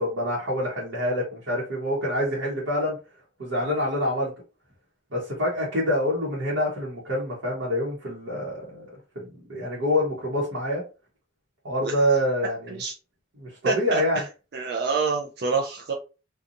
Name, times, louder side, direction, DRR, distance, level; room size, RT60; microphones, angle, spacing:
voice 1, 0.0-3.0 3.4-4.3 5.1-10.8 11.6-12.8 13.4-14.2, left 1 dB, 75° right, -6 dB, 1.0 m, -26 dB
voice 2, 13.6-14.3 14.5-15.9, right 5 dB, 55° right, 1 dB, 0.4 m, -27 dB
2.5 x 2.3 x 2.7 m, 0.31 s
head